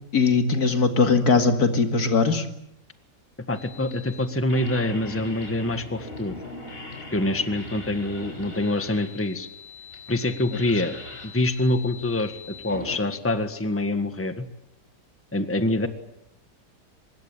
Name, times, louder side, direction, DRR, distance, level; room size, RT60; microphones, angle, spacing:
voice 1, 0.1-2.5, left 4 dB, 65° left, 7 dB, 2.6 m, -20 dB
sound 1, 3.5-13.0, left 2 dB, 35° left, 4.9 m, -40 dB
voice 2, 3.5-6.3 7.1-9.5 10.1-10.9 11.2-14.5 15.3-15.9, left 1 dB, 10° left, 9 dB, 1.6 m, -25 dB
24.5 x 21.5 x 9.1 m, 0.78 s
omnidirectional pair, 1.7 m